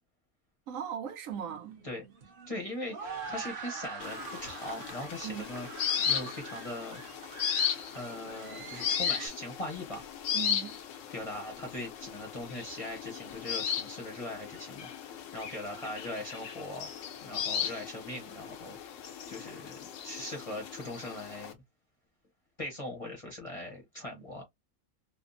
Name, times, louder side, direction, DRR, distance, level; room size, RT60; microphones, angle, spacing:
voice 1, 0.7-1.8 5.2-5.5 10.3-10.8 24.1-24.2, right 9 dB, 70° right, 1.1 m, -38 dB
sound 1, 1.3-9.3, right 5 dB, 45° right, 0.9 m, -44 dB
voice 2, 2.5-5.7 6.1-7.0 7.9-10.1 11.1-14.9 15.3-16.9 17.2-18.8 19.3-21.5 22.6-24.4, left 1 dB, 30° left, 0.8 m, -40 dB
sound 2, 4.0-21.5, left 8 dB, 65° left, 0.9 m, -36 dB
3.4 x 2.0 x 2.6 m
omnidirectional pair, 1.5 m